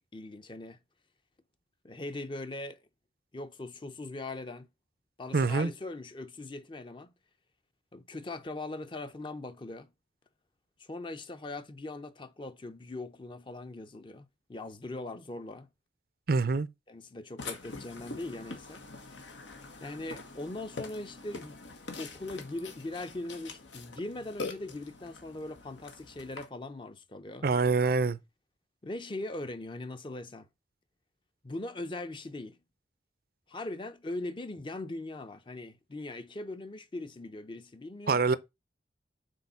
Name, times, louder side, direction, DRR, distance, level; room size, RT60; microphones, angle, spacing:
voice 1, 0.1-0.8 1.8-2.8 3.3-4.7 5.2-7.1 7.9-9.9 10.8-15.7 16.9-18.9 19.8-21.6 22.0-27.5 28.8-30.5 31.4-32.6 33.5-38.2, left 2 dB, 25° left, 0.6 m, -40 dB
voice 2, 5.3-5.7 16.3-16.7 27.4-28.2 38.1-38.4, right 4 dB, 55° right, 0.5 m, -25 dB
Burping eructation, 17.4-26.4, left 3 dB, 90° left, 1.5 m, -44 dB
6.4 x 4.4 x 5.5 m
head